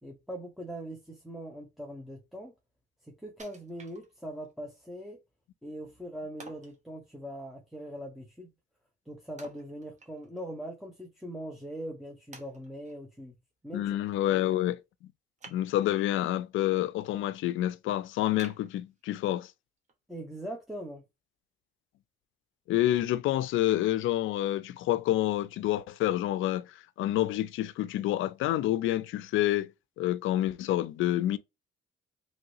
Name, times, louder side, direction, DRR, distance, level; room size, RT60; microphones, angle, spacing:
voice 1, 0.0-2.5 3.0-5.2 5.6-8.5 9.1-13.3 13.6-14.0 14.3-14.4 20.1-21.0, equal, ahead, 0.8 m, -41 dB
Wood, 3.4-4.5 5.0-5.1 6.4-6.8 9.4-10.5 10.8-10.9 11.6-11.7 12.3-13.0 15.4-16.1 16.6-17.1 17.5-17.6 18.4-19.4 19.9-20.0, right 3 dB, 35° right, 1.0 m, -52 dB
voice 2, 13.7-14.8 15.5-19.5 22.7-29.7 30.0-31.4, left 14 dB, 80° left, 0.4 m, -28 dB
3.1 x 2.9 x 2.7 m
cardioid pair, 90°, 20 cm